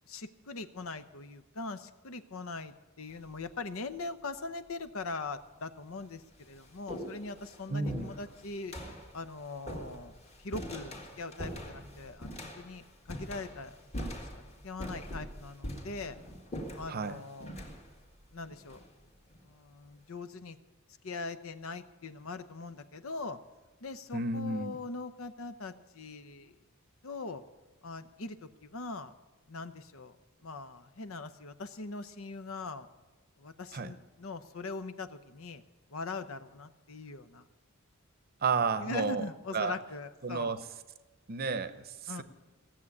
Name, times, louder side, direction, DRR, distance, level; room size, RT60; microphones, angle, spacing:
voice 1, 0.1-8.8 9.1-13.8 14.1-14.3 14.6-16.2 16.7-17.5 18.3-18.8 19.4-20.6 21.0-23.4 23.8-26.6 27.0-27.4 27.8-29.1 29.5-30.2 30.4-32.9 33.4-35.6 35.9-37.5 38.8-40.6 42.1-42.2, left 3 dB, 70° left, 12 dB, 0.8 m, -41 dB
sound 1, 3.1-3.5 4.5-4.6 5.4-5.5 5.9-19.4, equal, 30° left, 2.1 m, -44 dB
voice 2, 7.7-8.1 16.9-17.2 24.1-24.8 33.7-33.9 38.4-39.2 39.5-39.7 40.2-40.6 41.3-42.2, right 4 dB, 45° right, 12 dB, 0.7 m, -32 dB
17.0 x 7.4 x 9.7 m, 1.2 s
head